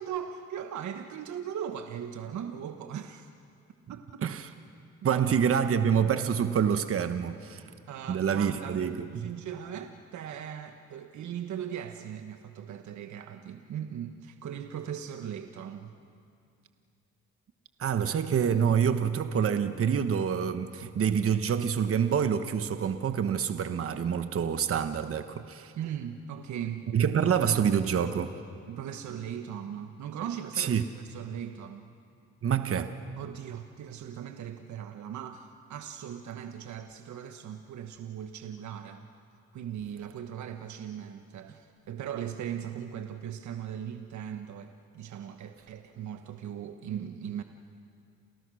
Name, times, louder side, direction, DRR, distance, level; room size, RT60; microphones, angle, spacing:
voice 1, 0.0-3.3 3.9-4.2 5.0-5.3 7.5-15.9 25.8-26.9 28.7-31.9 33.2-39.1 39.5-47.4, right 9 dB, 70° right, 1.3 m, -39 dB
voice 2, 5.0-7.6 8.1-9.3 17.8-25.7 26.9-28.3 30.6-30.8 32.4-33.0, right 7 dB, 50° right, 1.2 m, -27 dB
29.0 x 29.0 x 6.4 m
cardioid pair, 90°, 30 cm